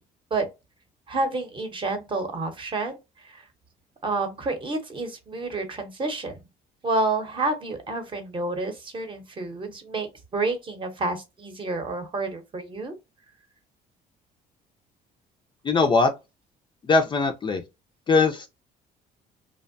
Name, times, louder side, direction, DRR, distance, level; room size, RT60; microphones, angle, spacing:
voice 1, 1.1-3.4 4.0-6.4 6.8-13.0, right 2 dB, 30° right, 0.8 m, -29 dB
voice 2, 15.6-16.1 16.8-17.6 18.1-18.5, left 4 dB, 30° left, 0.4 m, -20 dB
2.6 x 2.1 x 2.6 m
cardioid pair, 110°, 17 cm